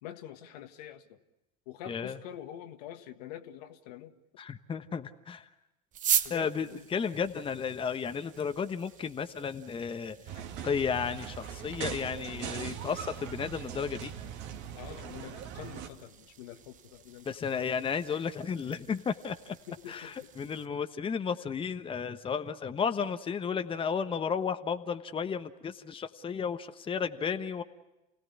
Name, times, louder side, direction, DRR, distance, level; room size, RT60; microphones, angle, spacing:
voice 1, 0.0-1.2 1.7-4.1 6.2-6.9 14.7-17.7 19.7-20.3 27.2-27.4, left 11 dB, 75° left, 7 dB, 1.6 m, -46 dB
voice 2, 1.9-2.2 4.4-5.5 6.3-10.2 10.6-14.1 17.2-19.6 19.9-27.6, left 6 dB, 25° left, 8 dB, 1.2 m, -33 dB
sound 1, 5.9-20.7, right 9 dB, 40° right, 1.2 m, -40 dB
sound 2, 10.3-15.9, right 8 dB, 60° right, 2.1 m, -40 dB
29.0 x 17.5 x 9.6 m, 1.0 s
hypercardioid pair, 85°, 21 cm